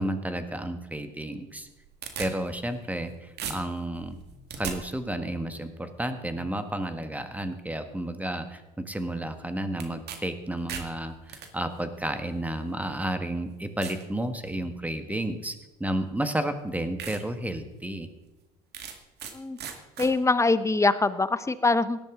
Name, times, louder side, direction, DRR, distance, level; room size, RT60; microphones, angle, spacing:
voice 1, 0.0-1.7 2.2-4.2 4.6-15.5 15.8-18.1, right 1 dB, 5° right, 8 dB, 1.6 m, -32 dB
sound 1, 1.5-3.1 3.4-4.8 9.8-10.2 10.5-11.5 12.4-12.5 13.1-13.2 13.8-14.0 14.5-14.9 16.0-16.1 16.6-16.7 17.0-17.2 17.6-17.7 18.7-19.3 19.6-20.1, right 7 dB, 55° right, 2.0 m, -38 dB
voice 2, 20.0-22.0, left 3 dB, 15° left, 14 dB, 0.9 m, -23 dB
17.5 x 12.5 x 3.8 m, 1.1 s
hypercardioid pair, 70°, 21 cm